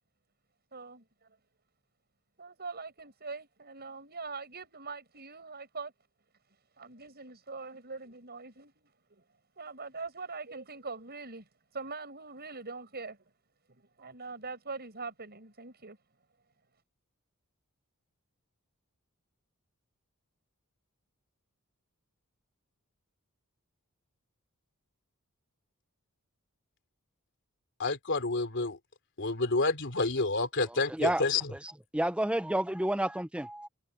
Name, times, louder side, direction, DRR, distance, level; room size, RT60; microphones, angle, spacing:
voice 1, 0.7-1.0 2.4-5.9 6.8-8.7 9.6-11.4 11.7-13.2 14.0-16.0, right 4 dB, 45° right, 8.0 m, -42 dB
voice 2, 27.8-28.8 29.2-31.5, left 3 dB, 55° left, 3.4 m, -29 dB
voice 3, 31.9-33.7, right 1 dB, 5° right, 0.7 m, -29 dB
head